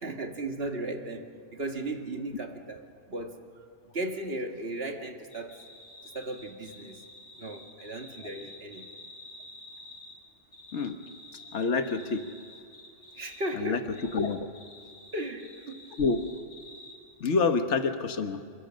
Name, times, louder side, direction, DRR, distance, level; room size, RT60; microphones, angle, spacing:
voice 1, 0.0-2.8 3.1-3.4 3.9-5.6 6.1-7.0 7.4-8.8 13.2-13.9 15.1-15.8, right 2 dB, 55° right, 4 dB, 2.1 m, -36 dB
sound 1, 5.3-10.2 10.5-13.5 13.9-16.9, left 1 dB, 85° left, 6.9 m, -50 dB
voice 2, 11.5-12.2 13.5-13.8 14.1-14.5 16.0-16.2 17.2-18.4, left 4 dB, 70° left, 7 dB, 1.6 m, -27 dB
28.0 x 22.0 x 6.5 m, 2.3 s
omnidirectional pair, 1.2 m